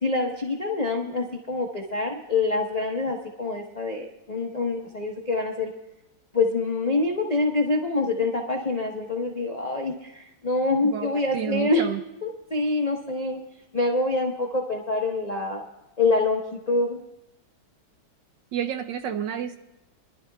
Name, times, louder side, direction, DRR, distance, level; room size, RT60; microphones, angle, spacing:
voice 1, 0.0-5.7 6.3-11.9 12.2-13.4 13.7-15.6 16.0-16.4 16.7-17.0, left 3 dB, 45° left, 0 dB, 0.5 m, -26 dB
voice 2, 10.8-12.0 18.5-19.6, right 9 dB, 70° right, 8 dB, 1.1 m, -30 dB
26.0 x 11.5 x 2.3 m, 0.96 s
omnidirectional pair, 2.3 m